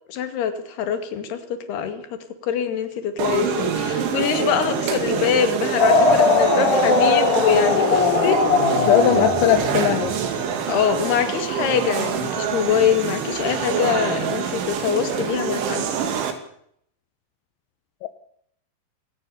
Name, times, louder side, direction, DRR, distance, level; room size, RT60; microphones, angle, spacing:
voice 1, 0.1-2.1 2.4-8.4 10.7-15.9, left 8 dB, 65° left, 9 dB, 4.2 m, -24 dB
sound 1, 3.2-16.3, right 7 dB, 85° right, 5.0 m, -25 dB
sound 2, 5.8-10.3, left 4 dB, 45° left, 5.0 m, -19 dB
voice 2, 8.9-10.1, left 13 dB, 80° left, 10 dB, 3.4 m, -19 dB
20.0 x 19.0 x 7.0 m, 0.68 s
omnidirectional pair, 5.3 m